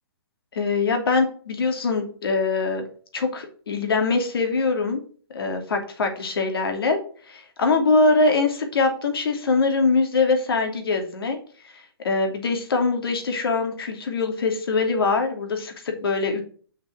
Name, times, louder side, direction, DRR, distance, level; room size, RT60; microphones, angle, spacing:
voice 1, 0.5-2.9 3.1-5.0 5.3-7.0 7.3-11.4 12.0-16.4, left 3 dB, 70° left, 5 dB, 2.7 m, -23 dB
7.2 x 6.1 x 6.1 m, 0.44 s
hypercardioid pair, 170°, 13 cm